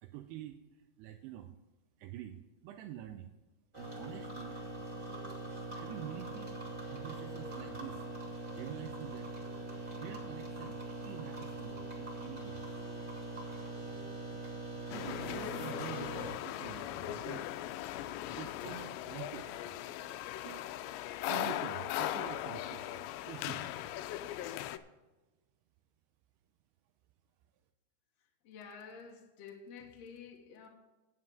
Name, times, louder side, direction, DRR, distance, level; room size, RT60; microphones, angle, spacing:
voice 1, 0.0-1.5 2.0-3.3 3.8-4.6 5.7-6.6 6.9-8.1 8.3-9.3 10.0-12.7 14.9-17.5 18.3-19.8 20.4-20.7 21.3-23.8, right 12 dB, 85° right, 2.6 m, -47 dB
sound 1, 3.7-16.3, right 2 dB, 15° right, 1.9 m, -42 dB
sound 2, 4.8-16.7 17.9-20.1, left 2 dB, 15° left, 1.5 m, -59 dB
sound 3, 14.9-24.8, left 13 dB, 90° left, 2.8 m, -39 dB
voice 2, 28.4-30.7, left 6 dB, 60° left, 1.7 m, -50 dB
9.5 x 7.5 x 6.5 m
omnidirectional pair, 4.9 m